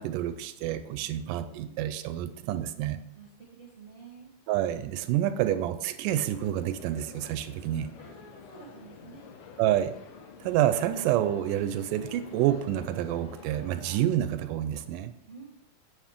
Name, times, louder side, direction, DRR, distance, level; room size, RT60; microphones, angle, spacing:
voice 1, 0.0-3.0 4.5-7.9 9.6-10.0 10.4-15.1, right 12 dB, 85° right, 11 dB, 2.1 m, -28 dB
voice 2, 1.0-1.8 3.1-4.3 8.0-9.3 15.3-15.5, right 4 dB, 45° right, -3 dB, 0.9 m, -50 dB
sound 1, 6.2-14.1, left 5 dB, 90° left, 2.5 m, -48 dB
9.1 x 7.2 x 3.6 m, 0.82 s
omnidirectional pair, 3.8 m